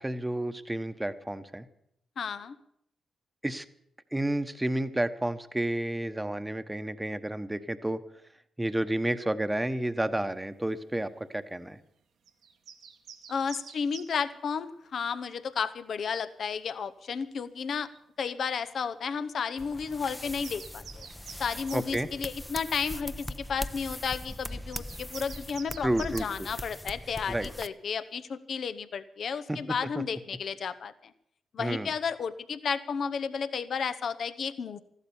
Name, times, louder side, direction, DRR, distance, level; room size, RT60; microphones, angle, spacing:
voice 1, 0.0-1.6 3.4-3.6 4.1-8.0 8.6-11.8 21.7-22.1 25.8-26.5 27.3-27.5 29.5-29.6 31.6-31.9, right 1 dB, 15° right, 10 dB, 1.0 m, -31 dB
voice 2, 2.2-2.5 13.3-17.9 18.2-21.1 21.4-30.9 31.5-34.8, left 6 dB, 65° left, 12 dB, 0.9 m, -33 dB
sound 1, 12.3-14.3 17.0-17.1 17.8-18.0 18.4-18.6 19.5-19.7 20.0-21.9 23.0-23.1 24.3-26.3, right 7 dB, 80° right, 1.4 m, -48 dB
sound 2, 19.6-27.7, left 1 dB, 10° left, 0.7 m, -40 dB
14.5 x 12.5 x 7.1 m, 0.74 s
supercardioid pair, 55°, 0 cm